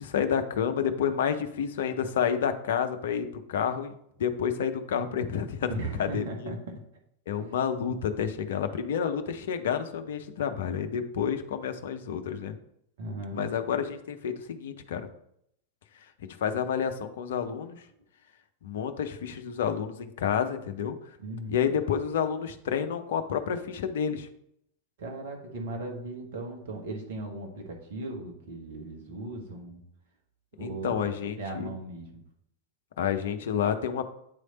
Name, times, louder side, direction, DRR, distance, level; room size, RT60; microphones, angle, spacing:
voice 1, 0.0-3.9 4.2-5.7 6.0-6.2 7.3-12.6 13.3-15.1 16.4-17.8 18.6-21.0 21.5-24.3 30.6-31.7 33.0-34.0, left 8 dB, 60° left, 8 dB, 0.6 m, -29 dB
voice 2, 5.7-6.8 7.4-7.5 13.0-13.5 21.2-21.7 25.0-29.8 30.6-31.0 31.4-32.2, right 2 dB, 55° right, 1 dB, 1.3 m, -37 dB
8.3 x 3.3 x 3.9 m, 0.73 s
figure-of-eight pair, 90°, 0 cm